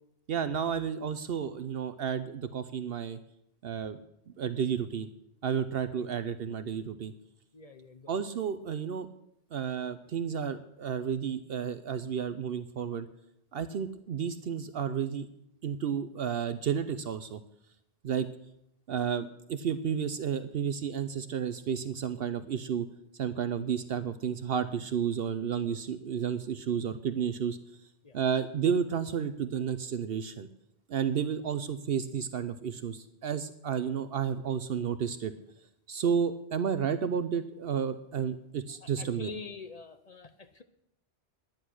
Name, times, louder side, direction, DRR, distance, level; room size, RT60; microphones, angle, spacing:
voice 1, 0.3-3.2 3.6-4.0 4.4-5.1 5.4-7.1 8.1-9.1 9.5-13.1 13.5-15.3 15.6-17.4 18.0-18.3 18.9-22.9 23.1-27.6 28.1-30.5 30.9-35.3 35.9-39.3, right 7 dB, 65° right, 12 dB, 0.8 m, -31 dB
voice 2, 7.5-8.2 28.0-28.2 38.8-40.6, left 4 dB, 40° left, 9 dB, 0.7 m, -45 dB
10.5 x 10.0 x 6.2 m, 0.77 s
omnidirectional pair, 1.1 m